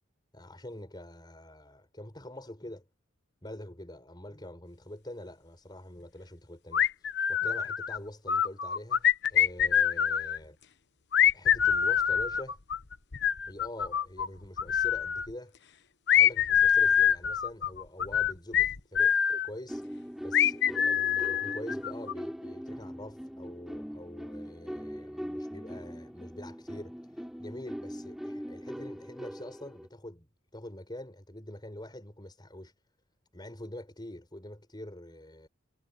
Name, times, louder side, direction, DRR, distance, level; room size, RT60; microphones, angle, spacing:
voice 1, 0.3-2.9 3.4-10.6 11.3-12.6 13.5-15.6 16.1-19.9 20.2-32.7 33.3-35.5, left 1 dB, 20° left, 5.1 m, -45 dB
sound 1, 6.7-8.0 8.3-10.4 11.1-14.3 14.6-15.3 16.1-19.5 20.3-22.1, left 9 dB, 55° left, 1.0 m, -25 dB
sound 2, 19.7-29.9, equal, ahead, 6.1 m, -41 dB
head